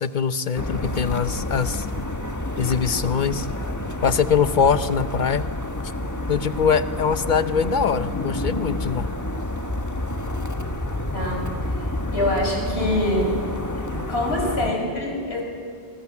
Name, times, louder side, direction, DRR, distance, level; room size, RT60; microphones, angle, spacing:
voice 1, 0.0-1.9 2.6-3.5 4.0-5.5 6.3-9.1, left 6 dB, 50° left, 12 dB, 1.0 m, -22 dB
sound 1, 0.5-14.7, left 1 dB, 15° left, 1.5 m, -29 dB
voice 2, 11.1-11.8 12.1-13.3 13.9-15.4, left 1 dB, 75° left, 0 dB, 6.0 m, -25 dB
27.0 x 24.5 x 7.3 m, 2.2 s
omnidirectional pair, 1.1 m